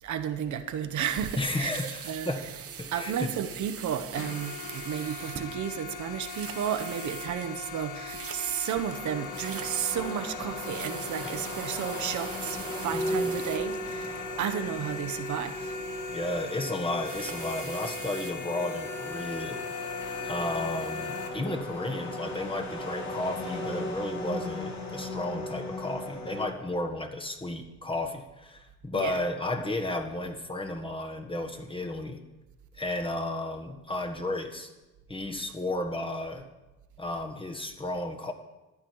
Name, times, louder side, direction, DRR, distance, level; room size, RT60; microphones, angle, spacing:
voice 1, 0.0-1.7 2.0-2.3 2.9-15.8 28.9-29.2, right 9 dB, 70° right, 1.0 m, -33 dB
sound 1, 1.0-14.5 16.9-18.3, right 7 dB, 50° right, 1.1 m, -43 dB
voice 2, 1.4-2.5 2.8-3.3 11.2-11.4 12.9-13.4 16.1-19.8 20.2-32.2 32.7-34.7 35.1-36.5 37.0-38.3, left 1 dB, 15° left, 1.5 m, -33 dB
sound 2, 4.1-21.3, left 5 dB, 85° left, 1.6 m, -40 dB
sound 3, 8.9-26.5, left 1 dB, 65° left, 3.0 m, -37 dB
14.5 x 10.5 x 4.7 m
cardioid pair, 90°, 30 cm